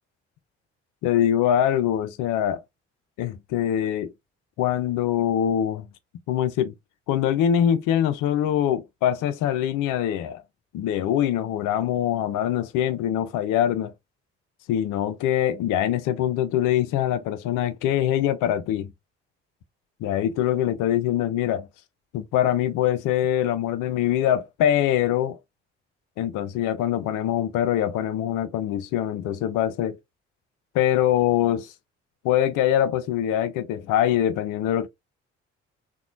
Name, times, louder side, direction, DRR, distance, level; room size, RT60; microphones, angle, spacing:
voice 1, 1.0-2.6 3.2-4.1 4.6-5.9 6.3-6.7 7.1-10.4 10.7-13.9 14.7-18.9 20.0-21.7 22.1-25.4 26.2-30.0 30.7-31.7 32.2-34.9, left 11 dB, 65° left, 0.5 m, -23 dB
2.9 x 2.2 x 2.5 m
hypercardioid pair, 45°, 34 cm